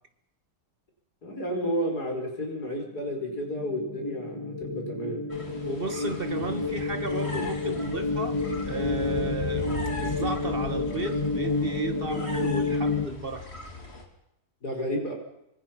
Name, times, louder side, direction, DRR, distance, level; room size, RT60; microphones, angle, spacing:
voice 1, 1.2-5.2 14.6-15.1, equal, 70° left, 1 dB, 5.4 m, -31 dB
sound 1, 2.5-13.1, left 3 dB, 15° left, 1.9 m, -30 dB
sound 2, 5.3-14.0, left 1 dB, 40° left, 3.6 m, -38 dB
voice 2, 5.6-9.7 10.0-13.4, right 3 dB, 35° right, 8 dB, 1.8 m, -34 dB
25.5 x 24.5 x 5.9 m, 0.82 s
omnidirectional pair, 1.8 m